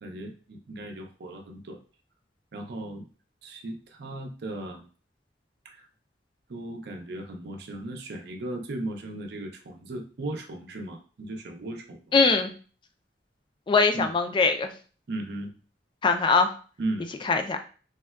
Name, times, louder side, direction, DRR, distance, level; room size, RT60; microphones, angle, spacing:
voice 1, 0.0-1.8 2.5-3.0 3.4-4.8 5.6-5.9 6.5-12.0 13.9-14.1 15.1-15.5 16.8-17.1, right 1 dB, 65° right, 4 dB, 0.5 m, -36 dB
voice 2, 12.1-12.5 13.7-14.7 16.0-16.5 17.2-17.6, left 4 dB, 30° left, 6 dB, 0.3 m, -21 dB
3.4 x 2.2 x 2.2 m, 0.39 s
head